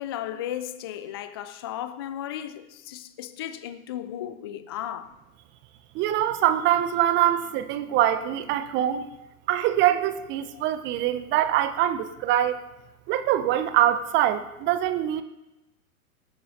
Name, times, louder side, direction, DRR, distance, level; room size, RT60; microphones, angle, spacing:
voice 1, 0.0-5.1 10.5-10.6, left 11 dB, 20° left, 0.3 m, -35 dB
voice 2, 5.9-9.0 9.5-12.6 13.1-15.2, right 12 dB, 25° right, 0.8 m, -24 dB
19.0 x 9.1 x 4.2 m
figure-of-eight pair, 105°, 44 cm